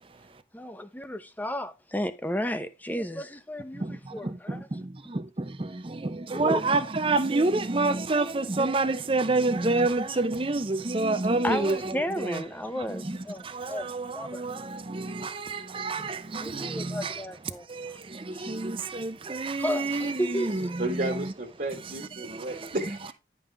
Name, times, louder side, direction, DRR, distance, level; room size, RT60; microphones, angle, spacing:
voice 1, 0.5-4.7 6.3-6.6 11.4-14.5 16.4-18.0 18.3-18.7 19.6-20.7, equal, 10° left, 0.7 m, -33 dB
voice 2, 3.7-12.4 12.8-17.2 17.7-21.3 22.2-23.0, right 2 dB, 30° right, 0.6 m, -29 dB
voice 3, 20.8-23.1, right 2 dB, 50° right, 1.4 m, -32 dB
10.5 x 5.5 x 3.4 m
head